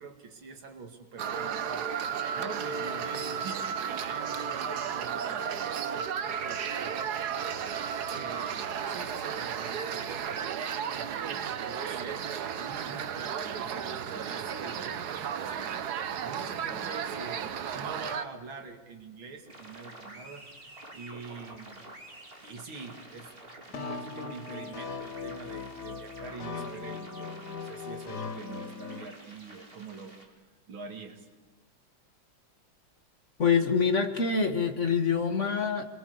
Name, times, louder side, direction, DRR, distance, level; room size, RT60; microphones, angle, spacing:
voice 1, 0.0-2.1 2.3-3.7 4.1-7.6 8.1-12.3 12.5-15.9 16.2-20.5 20.9-21.8 22.4-23.3 23.7-30.4 30.7-31.3, right 4 dB, 85° right, 5 dB, 3.1 m, -45 dB
sound 1, 1.2-18.3, right 7 dB, 60° right, 1.4 m, -34 dB
sound 2, 19.5-30.2, right 1 dB, 30° right, 3.5 m, -50 dB
sound 3, 23.7-29.1, left 5 dB, 55° left, 2.0 m, -39 dB
voice 2, 33.4-35.8, left 5 dB, 40° left, 6 dB, 1.9 m, -25 dB
27.5 x 22.0 x 8.0 m, 1.2 s
omnidirectional pair, 2.1 m